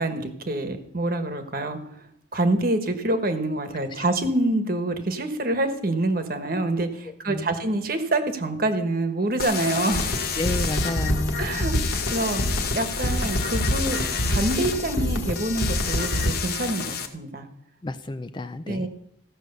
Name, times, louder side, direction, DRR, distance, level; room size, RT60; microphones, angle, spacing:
voice 1, 0.0-2.0 2.3-10.1 11.4-14.0 14.3-17.5 18.7-18.9, right 2 dB, 45° right, 8 dB, 1.3 m, -26 dB
voice 2, 7.1-7.5 10.4-11.7 17.8-18.9, left 2 dB, 25° left, 11 dB, 0.4 m, -31 dB
sound 1, 9.4-17.1, left 7 dB, 50° left, 1.1 m, -31 dB
sound 2, 9.9-16.3, equal, 90° left, 1.9 m, -27 dB
15.0 x 6.2 x 6.7 m, 0.74 s
head